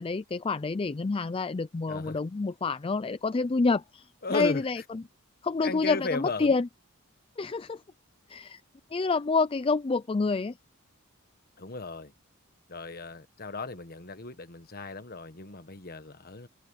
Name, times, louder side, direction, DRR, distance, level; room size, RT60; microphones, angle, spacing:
voice 1, 0.0-5.0 5.4-6.7 7.4-7.8 8.3-8.6 8.9-10.6, left 4 dB, 25° left, 0.4 m, -28 dB
voice 2, 1.9-2.2 4.2-4.6 5.6-6.6 11.6-12.1 12.7-16.5, left 3 dB, 45° left, 1.4 m, -35 dB
head